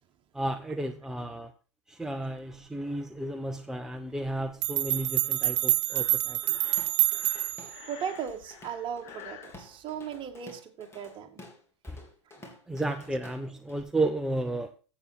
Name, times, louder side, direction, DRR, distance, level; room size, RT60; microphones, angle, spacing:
voice 1, 0.3-1.5 1.9-6.4 11.9-12.0 12.7-14.7, right 2 dB, 5° right, 0.9 m, -32 dB
sound 1, 4.3-4.4 4.6-7.8, right 17 dB, 65° right, 1.0 m, -27 dB
Breathing, 5.9-9.6, left 10 dB, 50° left, 2.0 m, -49 dB
Drum kit / Drum, 6.4-7.8 8.1-13.8, left 1 dB, 15° left, 3.6 m, -51 dB
voice 2, 7.9-11.4, right 8 dB, 35° right, 2.1 m, -37 dB
14.0 x 8.3 x 4.6 m
hypercardioid pair, 100°, 15 cm